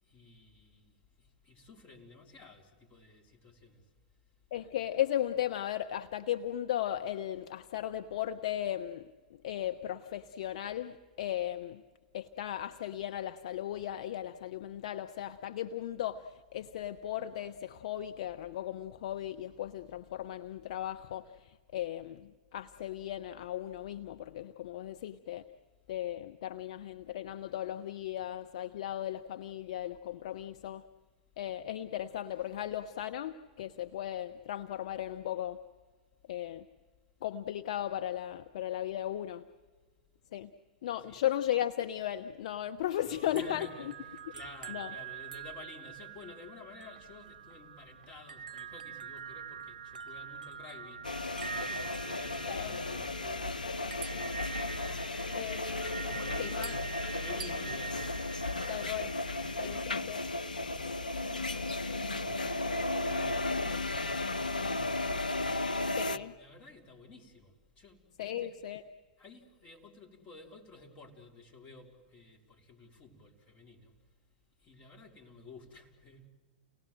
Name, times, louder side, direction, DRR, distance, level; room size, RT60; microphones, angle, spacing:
voice 1, 0.0-3.9 41.1-41.2 43.0-55.7 56.0-60.1 60.4-65.5 66.0-68.6 69.2-73.9 74.6-76.3, left 3 dB, 30° left, 4.3 m, -53 dB
voice 2, 4.5-9.1 9.4-11.8 12.1-25.4 25.9-30.8 31.4-35.6 36.3-36.7 37.2-39.4 40.3-40.5 40.8-43.9 44.7-44.9 52.5-52.7 55.3-55.6 56.4-56.7 58.7-59.1 59.6-60.2 65.9-66.3 68.2-68.8, left 11 dB, 55° left, 0.8 m, -36 dB
sound 1, 43.0-59.8, right 7 dB, 75° right, 0.6 m, -45 dB
sound 2, 51.0-66.2, left 2 dB, 85° left, 0.8 m, -34 dB
30.0 x 18.5 x 7.7 m
figure-of-eight pair, 105°, 4 cm